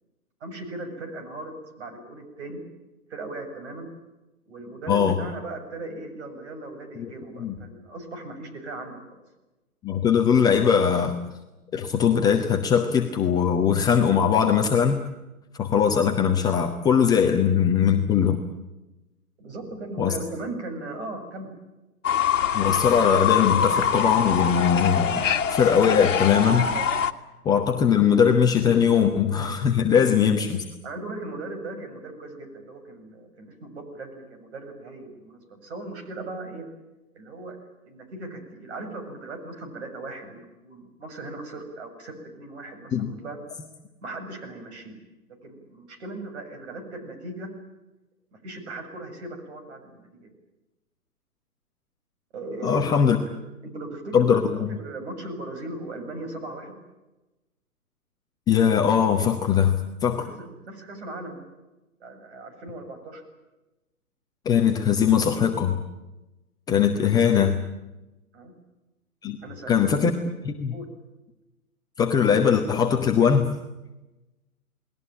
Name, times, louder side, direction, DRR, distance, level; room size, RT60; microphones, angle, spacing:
voice 1, 0.4-1.5 1.8-2.6 3.1-3.9 4.5-9.2 19.4-21.5 29.9-30.5 30.8-36.6 37.1-37.6 37.8-43.4 44.0-44.9 45.4-47.5 48.3-50.3 52.3-53.0 53.3-53.4 53.6-54.4 54.7-56.7 60.6-61.4 62.0-63.2 68.3-68.5 69.4-69.9 70.7-70.9, right 2 dB, 45° right, 5 dB, 7.3 m, -38 dB
voice 2, 4.9-5.2 7.0-7.1 7.4-7.6 9.8-11.2 11.7-15.0 15.6-18.4 20.0-20.2 22.5-26.7 27.4-30.6 42.9-43.1 52.6-53.2 54.1-54.7 58.5-60.3 64.4-65.8 66.7-67.6 69.2-69.4 69.7-70.1 70.4-70.7 72.0-73.5, left 7 dB, 10° left, 2 dB, 0.9 m, -21 dB
Fowl / Bird, 22.0-27.1, left 7 dB, 55° left, 1.8 m, -24 dB
29.0 x 20.0 x 9.0 m, 1.0 s
figure-of-eight pair, 125°, 45 cm